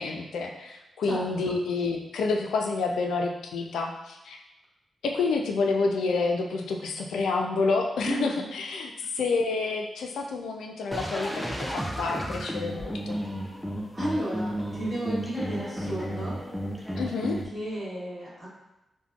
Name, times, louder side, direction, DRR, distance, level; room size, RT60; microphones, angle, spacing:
voice 1, 0.0-4.4 5.0-13.2 17.0-17.4, left 4 dB, 80° left, 2 dB, 0.3 m, -29 dB
voice 2, 1.1-1.6 8.0-8.5 13.9-16.4 17.5-18.5, right 1 dB, 25° right, -8 dB, 1.4 m, -33 dB
sound 1, 10.9-17.4, equal, ahead, 0.5 m, -33 dB
3.4 x 2.1 x 2.3 m, 0.95 s
supercardioid pair, 45°, 0 cm